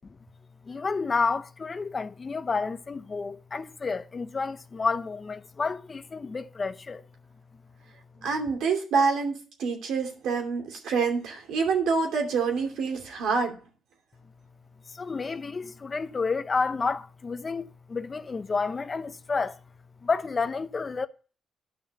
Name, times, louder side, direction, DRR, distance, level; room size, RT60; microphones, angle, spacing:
voice 1, 0.6-7.0 14.9-19.6 20.0-21.1, left 4 dB, 35° left, 0.8 m, -30 dB
voice 2, 8.2-13.6, right 5 dB, 80° right, 2.7 m, -27 dB
11.0 x 5.8 x 6.6 m
cardioid pair, 90°, 0 cm